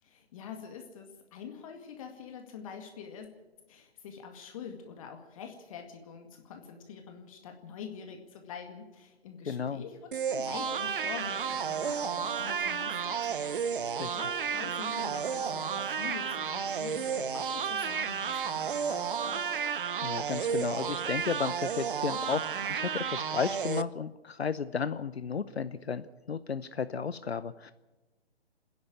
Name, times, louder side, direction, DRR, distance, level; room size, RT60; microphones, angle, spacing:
voice 1, 0.0-3.3 3.7-19.5, left 7 dB, 30° left, 4 dB, 2.0 m, -45 dB
voice 2, 9.5-9.8 14.0-14.2 20.0-27.7, left 6 dB, 70° left, 14 dB, 0.8 m, -33 dB
sound 1, 10.1-23.8, right 7 dB, 50° right, 0.9 m, -32 dB
27.5 x 10.5 x 8.9 m, 1.1 s
figure-of-eight pair, 135°, 32 cm